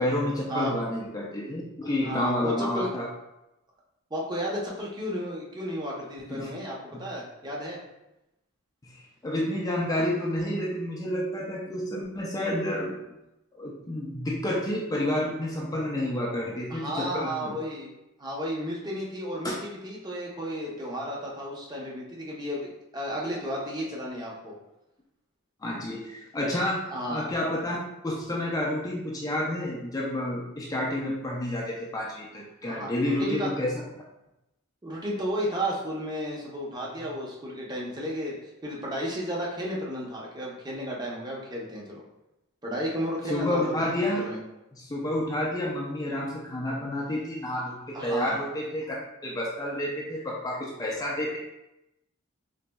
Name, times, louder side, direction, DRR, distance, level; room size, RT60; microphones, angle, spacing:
voice 1, 0.0-3.1 6.3-6.5 6.9-7.0 8.8-13.0 13.5-17.6 19.4-19.5 25.6-26.8 27.1-27.8 28.0-33.8 43.3-44.3 44.7-49.0 49.2-51.4, left 1 dB, 15° left, -2 dB, 0.3 m, -30 dB
voice 2, 2.0-2.9 4.1-7.8 16.7-17.9 18.2-24.6 26.9-27.3 32.6-33.5 34.8-38.4 38.6-42.0 42.6-44.4 47.9-48.4, equal, 20° right, -3 dB, 0.6 m, -33 dB
3.9 x 2.6 x 2.2 m, 0.91 s
head